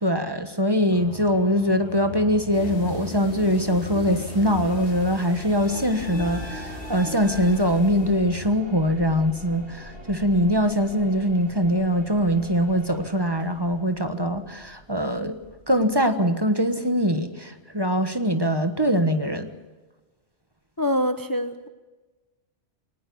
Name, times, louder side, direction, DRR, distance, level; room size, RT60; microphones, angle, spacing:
voice 1, 0.0-15.4 15.7-19.5, equal, 20° right, 8 dB, 1.3 m, -22 dB
sound 1, 0.9-14.6 15.0-15.1, left 1 dB, 70° left, 2.8 m, -43 dB
sound 2, 2.5-8.3, left 2 dB, 50° left, 2.9 m, -38 dB
sound 3, 4.3-16.1, right 2 dB, 55° right, 4.2 m, -46 dB
voice 2, 20.8-21.7, equal, 20° left, 9 dB, 0.9 m, -25 dB
23.0 x 19.0 x 7.0 m, 1.2 s
omnidirectional pair, 1.2 m